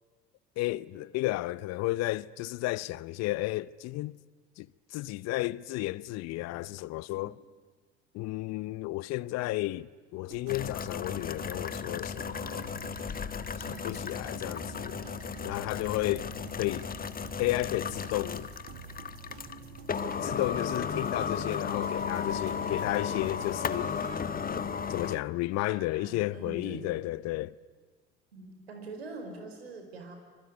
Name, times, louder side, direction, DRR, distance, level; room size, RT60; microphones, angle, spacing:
voice 1, 0.6-4.2 4.6-4.7 4.9-7.4 8.1-12.8 13.6-15.0 15.4-16.3 16.6-16.9 17.4-18.5 20.2-23.9 24.9-27.5, left 18 dB, 55° left, 0.9 m, -33 dB
sound 1, 10.3-24.2, right 10 dB, 65° right, 1.7 m, -49 dB
sound 2, 10.5-25.2, left 6 dB, 30° left, 1.5 m, -35 dB
voice 2, 13.6-14.0 25.7-27.0 28.3-30.2, right 3 dB, 90° right, 5.1 m, -44 dB
26.0 x 23.5 x 9.7 m
hypercardioid pair, 65°, 30 cm